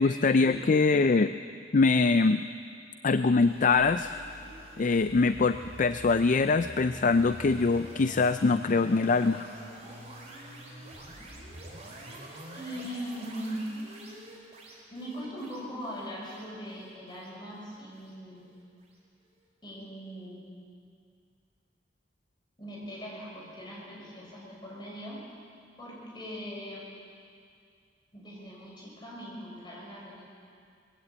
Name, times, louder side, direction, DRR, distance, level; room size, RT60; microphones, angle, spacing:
voice 1, 0.0-1.4 1.7-2.5 3.0-4.2 4.8-9.5, left 4 dB, 45° left, 11 dB, 0.4 m, -23 dB
sound 1, 3.4-18.6, right 1 dB, 35° right, 4.6 m, -47 dB
voice 2, 12.5-13.6 14.9-18.5 19.6-20.4 22.6-25.2 25.8-26.8 28.1-30.2, equal, 25° left, -4 dB, 6.5 m, -40 dB
21.5 x 16.0 x 8.6 m, 2.3 s
head